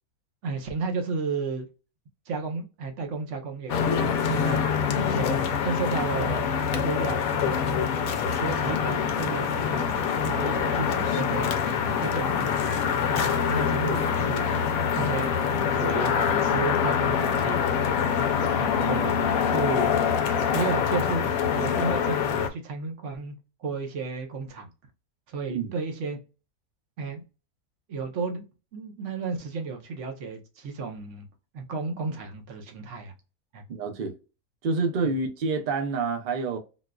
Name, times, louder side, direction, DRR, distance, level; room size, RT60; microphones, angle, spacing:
voice 1, 0.4-1.7 2.3-4.6 5.1-7.7 8.3-9.9 10.2-11.5 12.0-12.7 13.1-15.3 15.7-17.6 18.2-19.2 19.5-19.9 20.5-21.3 21.5-24.7 25.3-26.2 27.0-27.2 27.9-28.4 28.7-31.3 31.5-33.1 33.5-33.6, right 4 dB, 60° right, 0.9 m, -33 dB
sound 1, 3.7-22.5, left 7 dB, 70° left, 0.9 m, -25 dB
voice 2, 33.7-34.1 34.6-36.6, right 4 dB, 90° right, 0.4 m, -28 dB
3.9 x 2.4 x 2.2 m
omnidirectional pair, 1.6 m